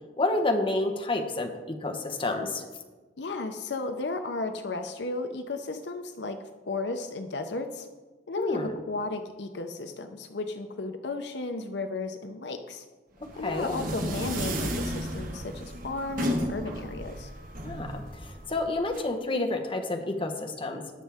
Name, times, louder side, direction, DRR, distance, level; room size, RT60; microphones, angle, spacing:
voice 1, 0.2-2.6 8.4-8.8 13.2-13.8 17.6-20.9, left 2 dB, 30° left, 4 dB, 1.1 m, -29 dB
voice 2, 3.2-6.4 6.7-7.9 8.3-12.8 13.4-17.3, left 3 dB, 75° left, 7 dB, 0.7 m, -34 dB
sound 1, 13.2-19.0, equal, 55° right, 1.3 m, -33 dB
19.0 x 6.4 x 3.5 m, 1.3 s
head